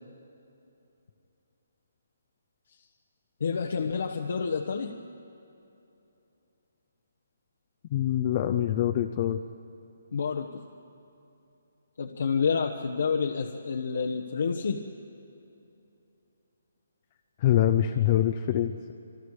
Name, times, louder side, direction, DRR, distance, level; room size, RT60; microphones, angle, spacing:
voice 1, 3.4-5.0 10.1-10.6 12.0-14.8, left 5 dB, 65° left, 3 dB, 1.2 m, -29 dB
voice 2, 7.9-9.4 17.4-18.9, left 11 dB, 30° left, 7 dB, 0.7 m, -25 dB
28.0 x 23.5 x 5.0 m, 2.8 s
hypercardioid pair, 165°, 0 cm